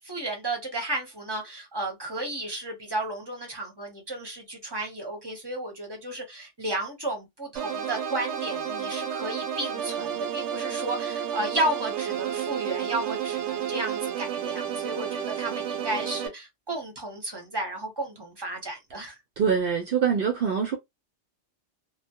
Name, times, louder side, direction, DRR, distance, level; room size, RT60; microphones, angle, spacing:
voice 1, 0.0-19.2, right 1 dB, 25° right, 0.7 m, -33 dB
sound 1, 7.6-16.3, right 9 dB, 85° right, 0.9 m, -31 dB
voice 2, 19.4-20.7, right 7 dB, 60° right, 0.7 m, -24 dB
2.2 x 2.0 x 2.7 m
omnidirectional pair, 1.2 m